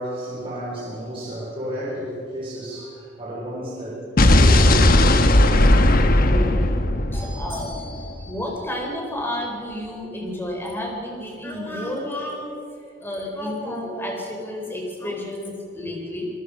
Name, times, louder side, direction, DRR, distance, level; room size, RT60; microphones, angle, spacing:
voice 1, 0.0-5.2, right 1 dB, 30° right, -7 dB, 4.8 m, -31 dB
Explosion, 4.2-8.2, left 1 dB, 50° left, 1.2 m, -16 dB
voice 2, 6.2-6.6 7.1-12.6 13.0-16.3, left 1 dB, 10° left, 0 dB, 4.4 m, -31 dB
27.5 x 19.0 x 5.3 m, 2.4 s
head